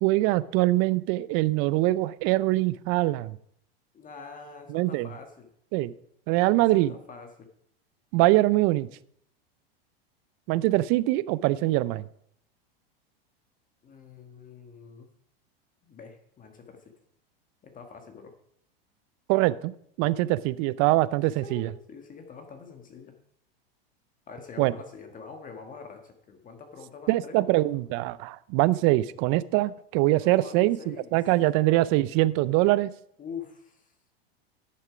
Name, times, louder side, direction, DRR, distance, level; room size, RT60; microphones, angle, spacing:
voice 1, 0.0-3.4 4.7-5.1 5.7-5.9 6.3-6.9 8.1-8.9 10.5-12.0 19.3-19.7 20.0-21.7 24.6-24.7 27.1-32.9, right 18 dB, 50° right, 18 dB, 0.6 m, -23 dB
voice 2, 3.9-5.5 6.6-7.3 13.8-15.1 15.8-16.9 17.6-18.3 21.4-23.1 24.3-27.6 30.2-31.2 33.2-33.9, left 5 dB, 25° left, 5 dB, 1.5 m, -45 dB
11.0 x 6.6 x 5.0 m, 0.67 s
hypercardioid pair, 110°, 30 cm